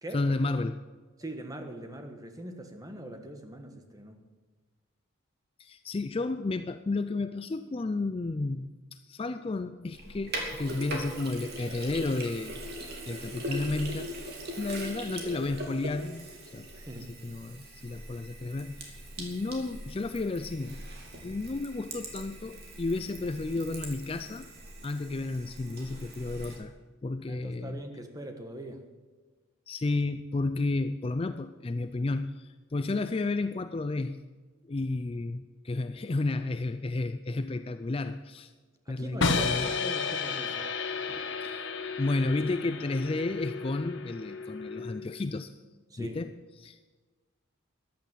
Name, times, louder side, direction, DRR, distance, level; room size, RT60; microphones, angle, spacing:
voice 1, 0.1-0.8 5.6-12.6 13.1-14.3 14.6-16.7 17.2-20.8 21.2-24.5 24.8-26.7 27.0-27.8 29.7-34.2 34.7-38.5 38.9-39.7 41.4-45.6 46.0-46.3 46.6-46.8, left 2 dB, 25° left, 10 dB, 0.4 m, -32 dB
voice 2, 1.2-4.2 16.7-17.2 27.3-28.8 38.9-40.7 41.1-41.3 45.9-46.2, right 1 dB, 15° right, 5 dB, 1.3 m, -42 dB
Sink (filling or washing), 9.9-26.6, right 1 dB, 50° right, 2.7 m, -41 dB
sound 1, 39.2-45.2, left 4 dB, 60° left, 1.3 m, -32 dB
14.0 x 10.5 x 7.5 m, 1.3 s
head